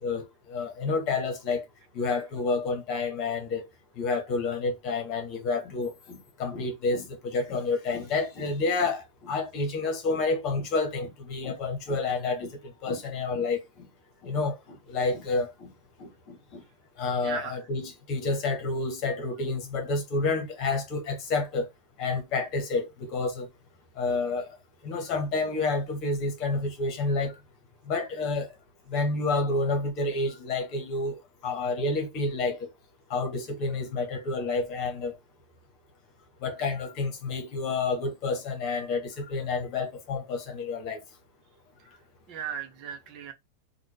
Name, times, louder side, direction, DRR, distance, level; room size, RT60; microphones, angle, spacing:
voice 1, 0.0-1.7 1.9-3.6 4.0-13.9 14.2-14.6 14.9-15.7 16.0-16.6 17.0-21.7 22.0-23.5 24.0-24.5 24.8-27.3 27.9-28.5 28.9-32.7 33.1-35.1 36.4-41.0, left 3 dB, 40° left, 1.4 m, -29 dB
voice 2, 17.2-17.6 41.8-41.9 42.3-43.3, right 7 dB, 40° right, 0.9 m, -37 dB
4.0 x 2.5 x 3.1 m
figure-of-eight pair, 90°, 0 cm